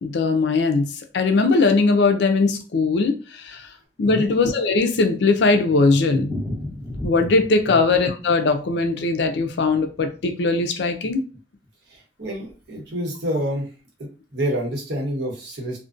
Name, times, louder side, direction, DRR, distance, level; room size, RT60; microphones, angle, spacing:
voice 1, 0.0-3.7 4.0-6.4 7.0-11.2, left 3 dB, 65° left, 6 dB, 0.4 m, -20 dB
Thunder, 4.7-10.7 10.9-11.0 11.3-11.4 11.6-11.7 12.3-12.6, left 1 dB, 10° right, 0.9 m, -36 dB
voice 2, 11.9-13.7 14.0-15.8, equal, 65° right, -1 dB, 1.0 m, -28 dB
2.5 x 2.1 x 2.4 m, 0.35 s
head